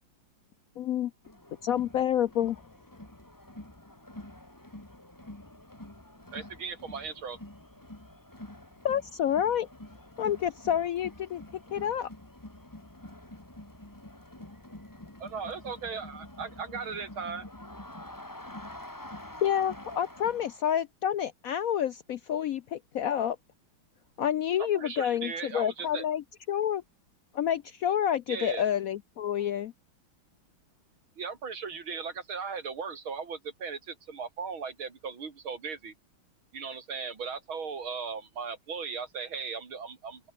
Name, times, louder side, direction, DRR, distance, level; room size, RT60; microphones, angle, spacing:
voice 1, 0.0-1.3 24.0-24.2 30.5-30.6, right 1 dB, 30° right, 7.9 m, -73 dB
voice 2, 0.8-1.1 1.6-2.6 8.8-9.7 10.2-11.4 11.7-12.1 19.4-23.4 24.2-26.2 26.5-26.8 27.3-29.7, left 10 dB, 80° left, 0.7 m, -28 dB
Crowd, 1.2-20.7, left 1 dB, 10° left, 2.2 m, -47 dB
voice 3, 6.3-7.4 15.2-17.5 24.6-26.1 28.3-28.6 31.2-35.9 36.5-40.3, right 5 dB, 85° right, 3.8 m, -37 dB
omnidirectional pair, 2.2 m